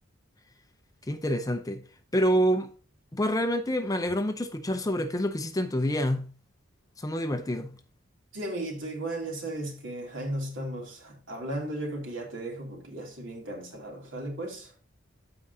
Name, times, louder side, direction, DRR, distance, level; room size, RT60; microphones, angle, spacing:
voice 1, 1.1-1.8 2.1-2.7 3.1-6.3 7.0-7.7, equal, 15° left, 0.6 m, -27 dB
voice 2, 8.3-14.7, right 1 dB, 65° right, 2.8 m, -35 dB
14.0 x 4.8 x 2.7 m
head